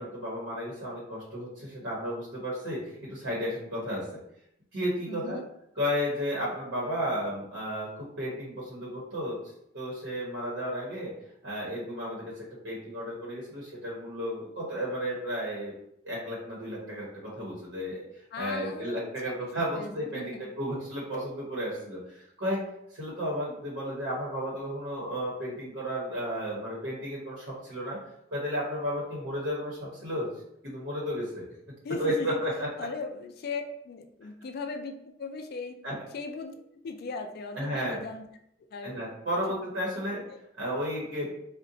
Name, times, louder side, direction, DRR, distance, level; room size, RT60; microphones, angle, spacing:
voice 1, 0.0-4.1 4.7-5.4 5.7-9.4 9.7-11.1 11.4-15.7 16.0-18.0 18.4-22.6 22.9-28.0 28.3-30.3 30.6-31.4 32.0-32.7 34.2-34.3 35.8-35.9 37.5-38.0 38.8-40.2 40.6-41.3, equal, 75° right, -5 dB, 0.9 m, -33 dB
voice 2, 5.1-5.5 18.3-19.5 19.7-20.5 31.8-32.4 32.8-35.8 36.1-36.5 36.8-38.2 38.7-39.0 40.3-40.4, left 3 dB, 55° left, 6 dB, 0.4 m, -38 dB
3.8 x 2.1 x 2.6 m, 0.76 s
head